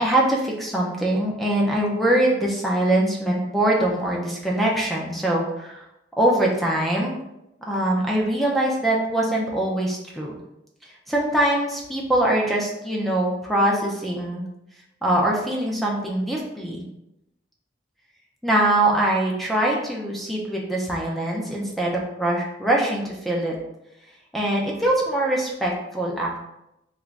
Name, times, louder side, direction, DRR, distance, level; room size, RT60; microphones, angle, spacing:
voice 1, 0.0-5.8 6.2-7.2 7.7-10.3 11.1-14.4 15.0-16.9 18.4-23.6 24.3-26.4, right 1 dB, ahead, -3 dB, 0.5 m, -23 dB
3.0 x 2.5 x 3.3 m, 0.86 s
head